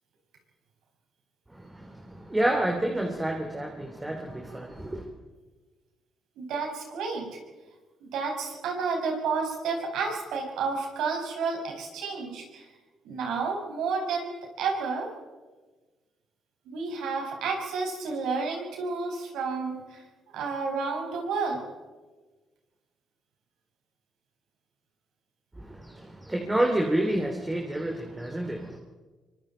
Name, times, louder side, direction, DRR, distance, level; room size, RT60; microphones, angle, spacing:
voice 1, 1.5-5.1 25.6-28.8, right 1 dB, 15° right, 2 dB, 3.1 m, -29 dB
voice 2, 6.4-7.4 8.0-12.7 13.0-15.1 16.7-20.0 20.3-21.6, right 4 dB, 85° right, 1 dB, 6.0 m, -31 dB
25.0 x 24.5 x 4.5 m, 1.3 s
cardioid pair, 90°, 0 cm